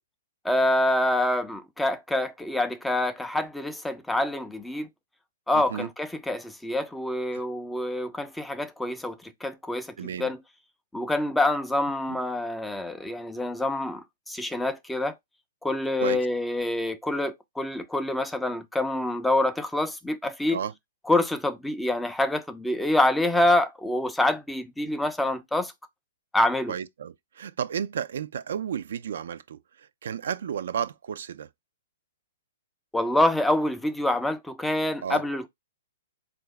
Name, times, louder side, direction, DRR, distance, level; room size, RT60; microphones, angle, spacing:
voice 1, 0.4-4.9 5.5-10.4 10.9-15.2 15.6-20.6 21.1-25.7 26.3-26.8 32.9-35.5, left 1 dB, 5° left, 0.4 m, -26 dB
voice 2, 10.0-10.3 12.1-12.2 16.0-16.2 20.5-20.7 26.7-29.6 30.0-31.5 35.0-35.2, right 8 dB, 70° right, 0.3 m, -32 dB
3.8 x 2.4 x 3.2 m
hypercardioid pair, 125°, 0 cm